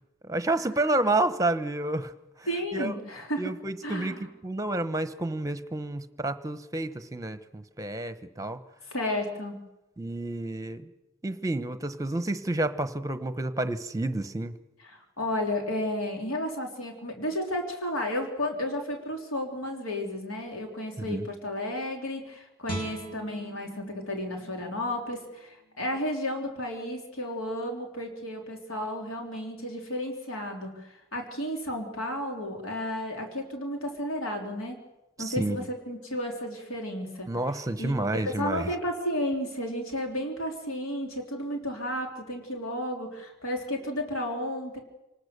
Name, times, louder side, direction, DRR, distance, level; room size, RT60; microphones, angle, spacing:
voice 1, 0.2-2.1 2.4-2.5 2.7-2.9 3.4-4.1 4.4-8.6 10.0-10.8 11.2-14.6 21.0-21.3 35.2-35.7 37.3-38.7, right 2 dB, 15° right, 11 dB, 1.0 m, -29 dB
voice 2, 2.5-3.5 3.8-4.3 8.9-9.6 14.8-34.8 35.2-37.3 37.8-37.9 38.2-44.8, left 1 dB, 75° left, 2 dB, 3.3 m, -33 dB
Guitar, 22.7-25.8 26.2-26.4, right 1 dB, 25° left, 2.5 m, -41 dB
27.5 x 19.0 x 6.8 m, 0.97 s
head